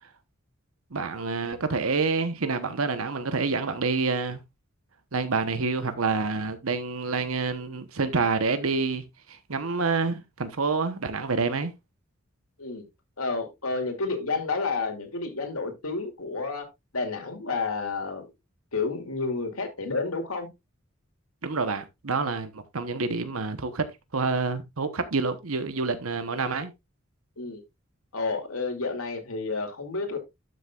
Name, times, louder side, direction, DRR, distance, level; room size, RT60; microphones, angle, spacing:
voice 1, 0.9-4.4 5.1-11.7 21.4-23.9 24.1-26.7, right 4 dB, 80° right, 1.1 m, -27 dB
voice 2, 13.2-16.7 16.9-18.3 18.7-20.5 27.4-27.6 28.1-30.2, left 4 dB, 90° left, 2.8 m, -30 dB
12.0 x 6.6 x 2.4 m
head